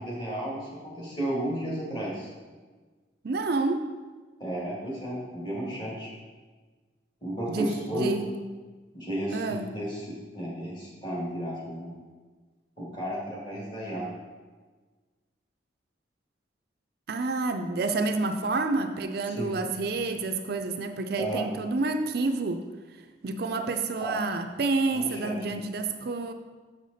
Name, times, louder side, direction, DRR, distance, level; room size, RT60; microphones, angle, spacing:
voice 1, 0.0-2.3 4.4-6.1 7.2-8.1 8.9-10.1 10.3-11.9 12.8-14.1 19.4-19.5 21.2-21.5 24.0-24.2 24.9-25.6, right 1 dB, 25° left, -4 dB, 2.1 m, -33 dB
voice 2, 3.2-3.8 7.5-8.3 9.3-9.7 17.1-22.6 23.2-26.3, right 3 dB, 55° right, 7 dB, 0.4 m, -29 dB
6.8 x 6.5 x 4.1 m, 1.4 s
head